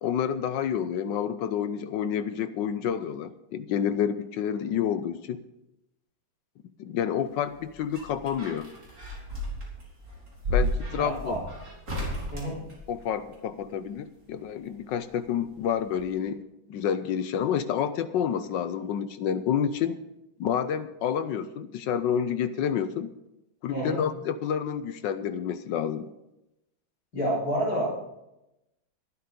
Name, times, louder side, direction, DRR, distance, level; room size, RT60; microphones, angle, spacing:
voice 1, 0.0-5.4 6.8-8.7 10.5-11.4 12.9-16.4 16.7-20.0 20.4-23.1 23.6-26.1, left 8 dB, 70° left, 12 dB, 1.2 m, -29 dB
sound 1, 7.4-13.4 14.8-15.7 16.0-16.1, left 1 dB, 35° right, 3.8 m, -33 dB
voice 2, 10.9-11.4 12.3-12.6 23.7-24.0 27.1-27.9, right 1 dB, 45° left, -6 dB, 4.5 m, -28 dB
12.5 x 11.5 x 5.2 m, 0.89 s
omnidirectional pair, 2.3 m